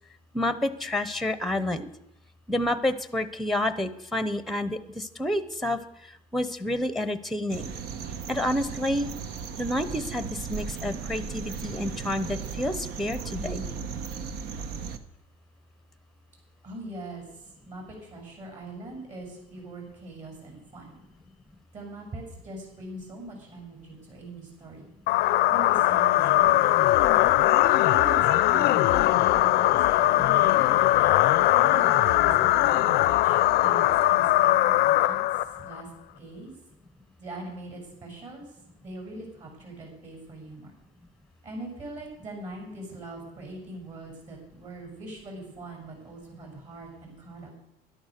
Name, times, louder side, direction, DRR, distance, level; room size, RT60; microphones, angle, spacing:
voice 1, 0.3-1.9 2.5-7.7 8.3-9.1 9.6-13.7, left 1 dB, ahead, 13 dB, 0.9 m, -29 dB
sound 1, 7.5-15.0, right 6 dB, 65° right, 1.2 m, -36 dB
voice 2, 16.6-21.0 21.7-24.9 25.5-27.0 27.7-30.7 31.5-35.9 36.2-36.5 37.2-40.7 41.4-47.5, right 2 dB, 45° right, 1 dB, 7.4 m, -42 dB
sound 2, 25.1-35.8, left 15 dB, 70° left, 0.6 m, -21 dB
12.5 x 11.5 x 6.6 m, 0.82 s
cardioid pair, 115°, 17 cm